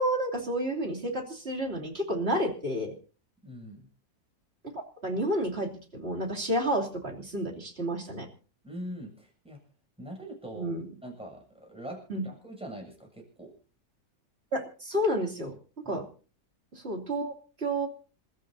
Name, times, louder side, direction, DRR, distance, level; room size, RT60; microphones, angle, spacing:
voice 1, 0.0-2.9 4.6-8.3 10.6-10.8 12.1-12.2 14.5-15.5 15.8-16.0 16.7-17.9, right 1 dB, 35° right, 0 dB, 3.2 m, -30 dB
voice 2, 3.4-3.9 8.6-9.6 10.0-10.7 11.0-13.5 15.8-16.0, right 1 dB, 5° right, 1 dB, 7.3 m, -42 dB
28.0 x 13.5 x 2.7 m, 0.38 s
omnidirectional pair, 1.8 m